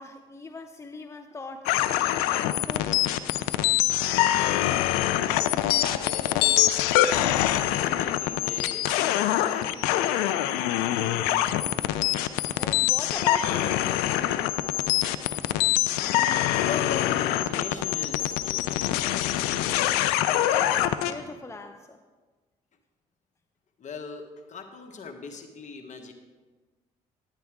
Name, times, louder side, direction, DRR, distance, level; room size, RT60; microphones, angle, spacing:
voice 1, 0.0-3.0 12.6-13.8 20.5-22.0, left 3 dB, 20° left, 6 dB, 0.7 m, -40 dB
sound 1, 1.7-21.1, left 13 dB, 85° left, 0.4 m, -24 dB
voice 2, 5.6-7.1 7.7-8.9 9.4-11.3 15.4-19.4 23.8-26.1, left 5 dB, 50° left, 5 dB, 1.3 m, -41 dB
10.0 x 10.0 x 3.6 m, 1.3 s
supercardioid pair, 60°, 16 cm